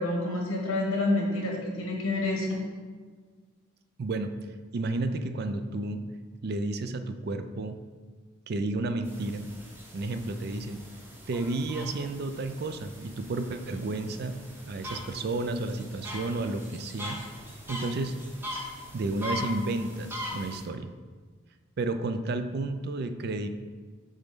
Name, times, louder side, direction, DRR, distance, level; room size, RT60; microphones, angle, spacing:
voice 1, 0.0-2.6, left 2 dB, 85° left, 0 dB, 1.3 m, -28 dB
voice 2, 4.0-4.3 4.7-6.0 6.4-7.8 8.5-9.5 9.9-10.8 11.3-14.4 14.7-17.2 17.7-18.2 18.9-20.9 21.8-23.5, right 2 dB, 50° right, 9 dB, 0.4 m, -31 dB
sound 1, 9.0-20.6, left 1 dB, 10° right, 0.7 m, -41 dB
7.2 x 3.9 x 3.6 m, 1.5 s
head